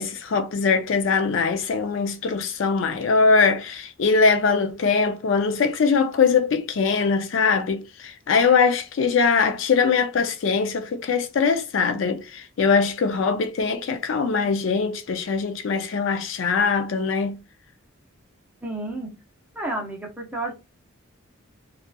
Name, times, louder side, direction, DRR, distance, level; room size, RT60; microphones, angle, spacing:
voice 1, 0.0-17.4, left 5 dB, 60° left, 0.4 m, -22 dB
voice 2, 18.6-19.1 19.5-20.5, right 2 dB, 5° right, 0.6 m, -31 dB
2.8 x 2.3 x 2.2 m
head